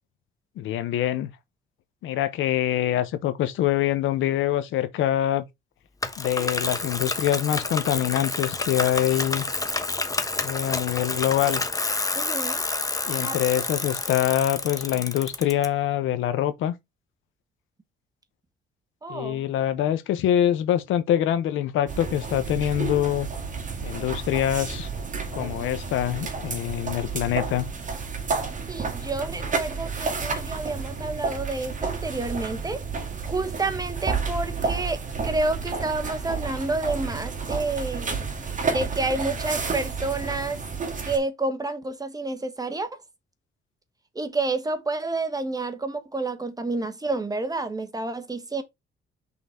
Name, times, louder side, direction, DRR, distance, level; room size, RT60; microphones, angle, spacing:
voice 1, 0.6-1.3 2.0-5.4 6.2-9.4 10.4-11.6 13.0-16.7 19.1-23.3 23.8-24.9 25.3-27.7, left 11 dB, 85° left, 1.0 m, -24 dB
Bicycle, 6.0-15.7, left 3 dB, 15° left, 1.0 m, -29 dB
voice 2, 12.1-12.7 13.2-13.4 19.0-19.4 28.7-32.8 33.2-38.1 38.7-40.6 41.0-42.9 44.1-48.6, right 2 dB, 20° right, 1.3 m, -29 dB
sound 1, 21.9-41.2, right 5 dB, 40° right, 2.0 m, -31 dB
5.7 x 4.0 x 4.4 m
cardioid pair, 90°, 20 cm